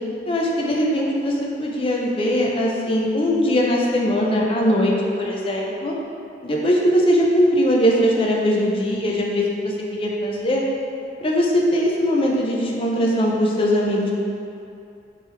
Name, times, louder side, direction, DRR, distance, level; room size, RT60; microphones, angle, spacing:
voice 1, 0.3-5.9 6.4-10.6 11.2-14.1, equal, 30° left, -2 dB, 0.4 m, -20 dB
3.4 x 3.3 x 3.2 m, 2.6 s
head